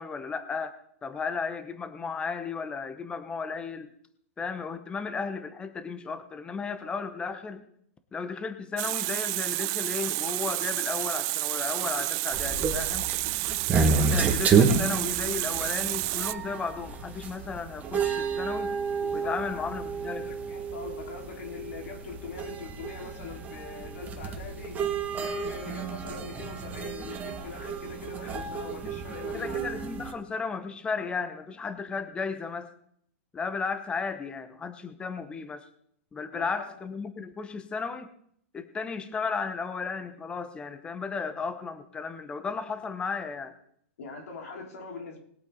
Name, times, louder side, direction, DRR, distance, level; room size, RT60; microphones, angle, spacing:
voice 1, 0.0-3.9 4.4-7.6 8.1-13.1 13.7-18.7 19.1-20.3 29.3-32.7 33.3-35.6 36.1-38.1 38.5-43.5, left 5 dB, 15° left, 10 dB, 1.0 m, -34 dB
Water tap faucet, 8.8-16.3, right 22 dB, 35° right, 0.4 m, -30 dB
sound 1, 12.3-30.1, right 5 dB, 20° right, 1.7 m, -30 dB
voice 2, 19.0-19.6 20.1-24.8 25.2-29.7 36.3-36.7 44.0-45.2, left 4 dB, 75° left, 2 dB, 3.6 m, -42 dB
21.0 x 8.3 x 3.9 m, 0.67 s
hypercardioid pair, 145°, 8 cm